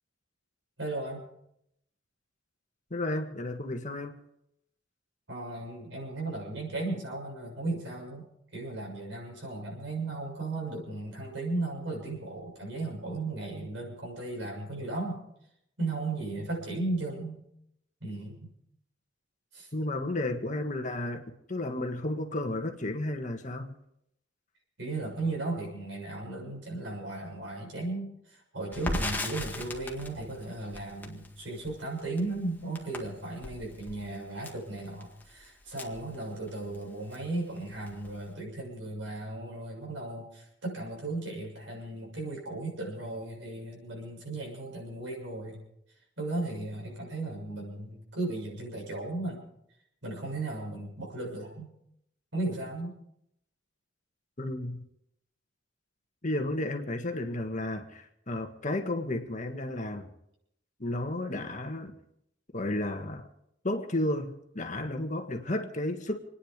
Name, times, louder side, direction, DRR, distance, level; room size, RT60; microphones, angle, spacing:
voice 1, 0.8-1.3 5.3-8.3 8.5-15.2 15.8-17.4 18.0-18.5 19.5-19.7 24.8-45.6 46.2-49.4 50.0-51.7 52.3-52.9, right 2 dB, 75° right, -1 dB, 7.0 m, -36 dB
voice 2, 2.9-4.2 19.7-23.8 54.4-54.8 56.2-60.1 60.8-62.0 62.5-63.3 63.6-66.2, left 1 dB, 40° left, 5 dB, 1.7 m, -33 dB
Crackle, 28.7-36.8 37.1-37.2 37.6-38.3, left 2 dB, 10° left, 1.9 m, -39 dB
27.5 x 10.0 x 5.2 m, 0.78 s
head